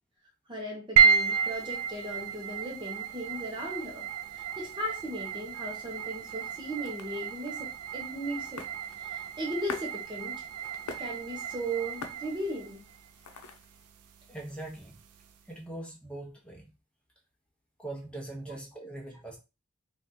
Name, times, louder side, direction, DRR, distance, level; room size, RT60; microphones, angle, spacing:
voice 1, 0.5-8.6 9.0-10.4 11.0-12.8 18.5-18.6, right 1 dB, 20° right, 0 dB, 0.7 m, -37 dB
sound 1, 1.0-15.4, right 7 dB, 80° right, 0.5 m, -32 dB
sound 2, 5.7-13.8, left 4 dB, 90° left, 0.6 m, -47 dB
voice 2, 14.3-15.0 15.5-16.7 17.8-19.4, right 2 dB, 5° left, 0 dB, 0.9 m, -41 dB
2.9 x 2.4 x 4.0 m, 0.27 s
head